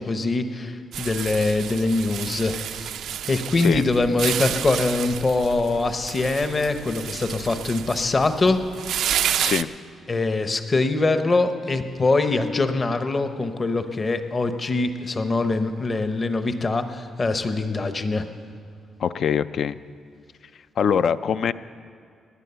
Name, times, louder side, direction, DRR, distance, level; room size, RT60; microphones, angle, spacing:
voice 1, 0.0-2.9 3.3-8.6 10.1-18.3, left 3 dB, 25° left, 9 dB, 0.8 m, -23 dB
sound 1, 0.9-9.6, right 10 dB, 75° right, 0.4 m, -30 dB
voice 2, 19.0-19.8 20.8-21.5, left 7 dB, 55° left, 14 dB, 0.4 m, -23 dB
18.5 x 10.0 x 6.8 m, 2.3 s
cardioid pair, 145°, 0 cm